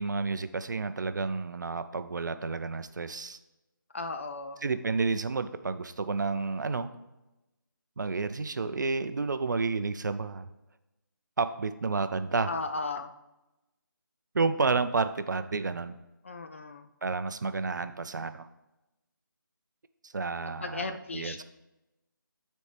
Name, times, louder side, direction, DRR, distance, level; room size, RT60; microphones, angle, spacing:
voice 1, 0.0-3.4 4.6-6.9 8.0-10.5 11.4-12.5 14.3-16.0 17.0-18.5 20.0-21.4, right 4 dB, 60° right, 11 dB, 0.5 m, -30 dB
voice 2, 3.9-4.6 12.5-13.1 16.2-16.9 20.6-21.4, left 3 dB, 35° left, 8 dB, 0.4 m, -35 dB
9.8 x 4.2 x 3.3 m, 0.97 s
figure-of-eight pair, 165°, 11 cm